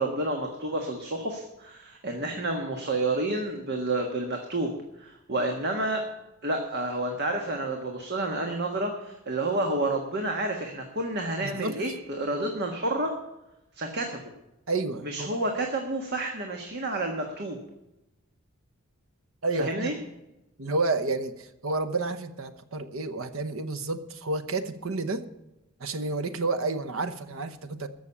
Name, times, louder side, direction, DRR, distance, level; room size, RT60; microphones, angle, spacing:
voice 1, 0.0-4.7 5.0-6.0 6.4-13.1 13.7-14.2 15.0-17.6 19.6-19.9, right 2 dB, 50° right, 2 dB, 1.5 m, -29 dB
voice 2, 11.4-11.7 14.7-15.3 19.4-19.9 20.6-25.2 25.8-27.9, right 3 dB, 70° right, 11 dB, 1.0 m, -30 dB
14.0 x 6.4 x 8.6 m, 0.93 s
head